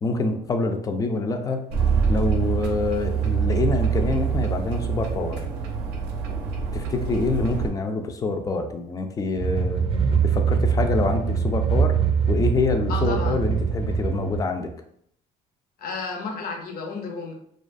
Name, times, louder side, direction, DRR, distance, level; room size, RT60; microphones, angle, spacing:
voice 1, 0.0-1.7 2.1-5.4 6.7-9.9 10.2-12.0 12.3-14.7, left 3 dB, 20° left, 5 dB, 0.3 m, -26 dB
sound 1, 1.7-7.7, right 6 dB, 75° right, 0.5 m, -25 dB
sound 2, 9.4-14.4, right 6 dB, 35° right, 0.6 m, -23 dB
voice 2, 12.9-13.4 15.8-17.3, left 4 dB, 60° left, 1 dB, 0.6 m, -32 dB
2.4 x 2.3 x 2.5 m, 0.67 s
cardioid pair, 110°, 17 cm